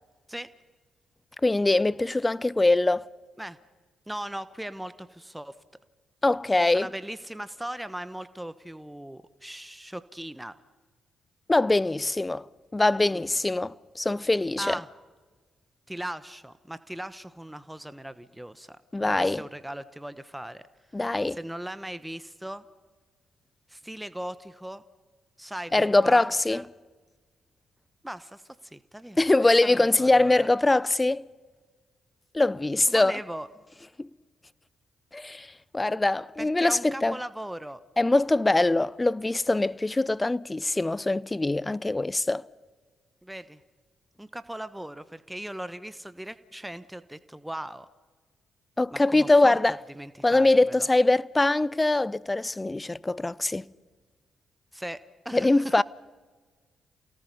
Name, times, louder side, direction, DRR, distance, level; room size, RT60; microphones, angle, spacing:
voice 1, 1.4-3.1 6.2-6.9 11.5-12.5 12.7-14.8 18.9-19.4 20.9-21.4 25.7-26.6 29.2-31.3 32.3-33.2 34.0-34.1 35.1-37.2 38.0-42.5 48.8-49.8 50.2-53.7 55.3-55.8, left 2 dB, 20° left, 0.6 m, -23 dB
voice 2, 4.1-5.6 6.7-10.5 13.1-13.3 14.6-14.9 15.9-18.8 19.2-20.6 21.3-22.6 23.7-24.8 25.4-26.7 28.0-29.2 29.6-30.5 32.9-33.5 36.4-37.8 43.2-43.6 44.2-47.9 48.9-49.6 49.9-50.9 54.7-55.8, right 1 dB, 5° right, 1.0 m, -38 dB
29.0 x 18.0 x 5.4 m
hypercardioid pair, 45°, 0 cm